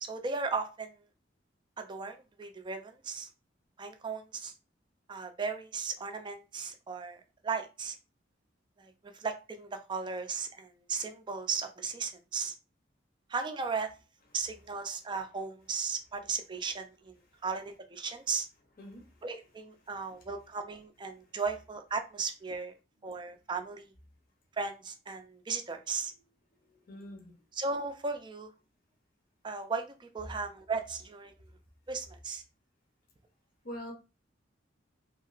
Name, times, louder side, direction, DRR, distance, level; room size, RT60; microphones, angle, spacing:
voice 1, 0.0-1.0 1.8-3.3 3.8-4.5 5.1-8.0 8.8-12.5 13.3-13.9 14.3-17.1 17.4-18.5 19.2-22.7 23.0-23.9 24.6-26.1 27.6-28.5 29.4-31.3 31.9-32.4, right 4 dB, 25° right, 6 dB, 0.4 m, -36 dB
voice 2, 18.8-19.2 19.8-19.9 26.9-27.3 33.6-33.9, equal, 50° left, 0 dB, 0.8 m, -44 dB
3.0 x 2.7 x 2.4 m, 0.30 s
head